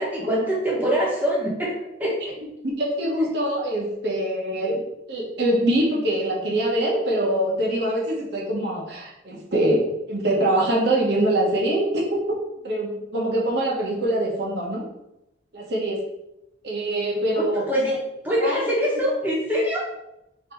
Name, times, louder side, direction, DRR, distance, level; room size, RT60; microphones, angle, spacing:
voice 1, 0.0-1.7 2.0-2.2 17.3-18.0 18.2-19.8, equal, 10° right, -6 dB, 1.0 m, -24 dB
voice 2, 2.6-12.2 12.6-14.8 15.5-16.0 16.6-17.6 18.4-18.6, right 1 dB, 55° right, -3 dB, 1.0 m, -24 dB
3.5 x 2.9 x 4.4 m, 0.87 s
head